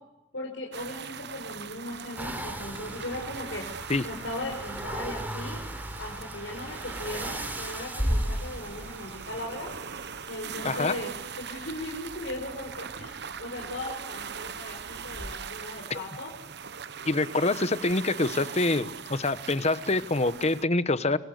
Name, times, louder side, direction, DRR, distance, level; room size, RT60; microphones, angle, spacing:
voice 1, 0.3-5.6 6.0-9.7 10.3-11.1 11.4-16.3, left 1 dB, 70° left, -1 dB, 5.5 m, -38 dB
sound 1, 0.7-20.6, right 7 dB, 60° right, 1.0 m, -41 dB
sound 2, 2.2-15.3, equal, 10° right, 4.0 m, -37 dB
voice 2, 17.1-21.2, left 2 dB, 35° left, 14 dB, 1.2 m, -26 dB
27.5 x 24.0 x 8.0 m, 0.95 s
head